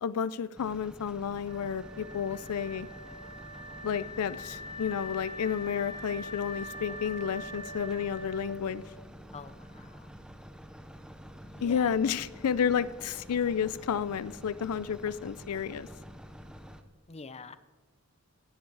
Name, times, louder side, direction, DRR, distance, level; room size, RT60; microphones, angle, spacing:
voice 1, 0.0-2.9 3.8-8.8 11.6-15.9, left 7 dB, 80° left, 17 dB, 0.4 m, -31 dB
sound 1, 0.6-16.8, equal, 5° right, 0.8 m, -48 dB
Wind instrument woodwind instrument, 1.4-9.0, left 1 dB, 70° right, 4.2 m, -43 dB
voice 2, 9.3-10.1 11.4-11.9 17.1-17.6, left 4 dB, 30° left, 13 dB, 0.6 m, -46 dB
16.5 x 9.4 x 4.7 m, 1.3 s
head